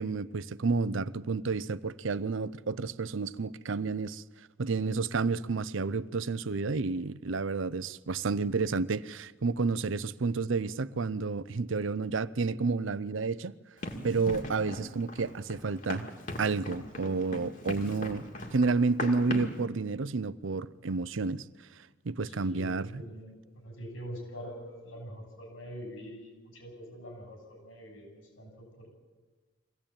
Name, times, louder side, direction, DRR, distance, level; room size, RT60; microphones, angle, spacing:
voice 1, 0.0-4.2 4.6-13.5 14.0-16.1 16.4-18.2 18.5-21.4 22.0-23.0, right 4 dB, 75° right, 0.6 m, -30 dB
Run, 13.8-19.6, left 1 dB, 40° left, 2.4 m, -39 dB
voice 2, 22.2-28.9, equal, 85° left, 7.6 m, -44 dB
23.0 x 16.5 x 8.8 m
head